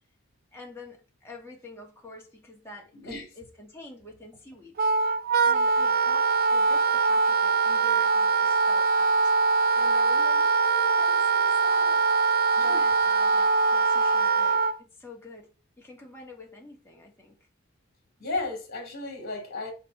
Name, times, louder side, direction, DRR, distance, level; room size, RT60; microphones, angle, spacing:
voice 1, 0.5-4.8 5.4-9.3 9.7-15.5 15.8-17.4, left 3 dB, 10° left, 2.0 m, -46 dB
voice 2, 2.9-3.3 12.6-12.8 18.2-19.7, left 2 dB, 45° left, 3.4 m, -34 dB
Wind instrument woodwind instrument, 4.8-14.8, right 4 dB, 40° right, 0.4 m, -22 dB
5.8 x 5.3 x 5.7 m
head